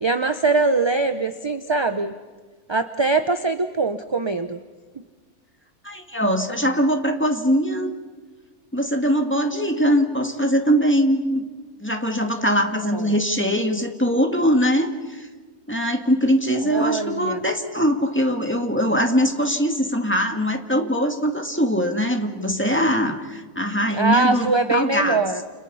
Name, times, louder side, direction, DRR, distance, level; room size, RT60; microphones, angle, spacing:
voice 1, 0.0-2.2 2.7-4.6 12.9-13.1 16.7-17.4 23.9-25.4, right 3 dB, 30° right, 9 dB, 0.6 m, -22 dB
voice 2, 5.8-7.9 8.7-11.4 11.8-15.3 15.7-25.4, equal, 10° left, 4 dB, 2.1 m, -22 dB
29.5 x 29.5 x 5.6 m, 1.3 s
omnidirectional pair, 1.5 m